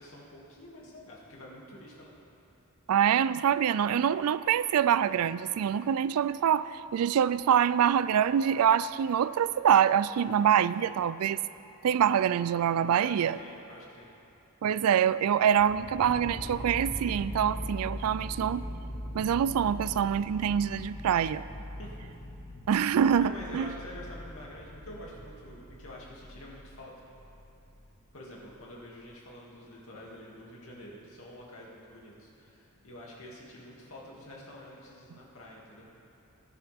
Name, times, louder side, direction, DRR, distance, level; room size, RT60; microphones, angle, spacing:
voice 1, 0.0-2.1 11.8-12.2 13.0-14.1 21.8-21.9 22.9-26.9 28.1-35.9, left 1 dB, 65° left, -4 dB, 2.4 m, -47 dB
voice 2, 2.9-11.4 11.8-13.4 14.6-18.7 19.1-21.5 22.7-23.7, right 8 dB, 75° right, 16 dB, 0.3 m, -25 dB
sound 1, 15.5-27.9 28.4-28.5, equal, 40° left, 1.1 m, -41 dB
19.5 x 10.0 x 3.5 m, 2.8 s
head